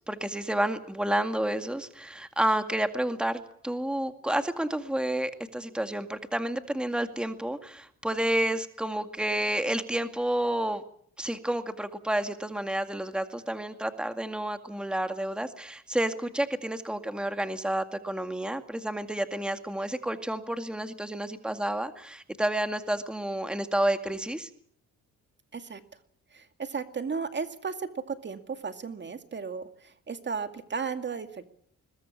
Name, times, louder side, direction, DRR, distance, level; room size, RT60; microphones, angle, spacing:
voice 1, 0.1-10.8 11.2-24.5, right 1 dB, 5° right, 8 dB, 2.1 m, -30 dB
voice 2, 25.5-26.0 26.3-31.4, right 5 dB, 35° right, 8 dB, 2.2 m, -35 dB
22.0 x 21.0 x 8.5 m, 0.64 s
cardioid pair, 90°, 30 cm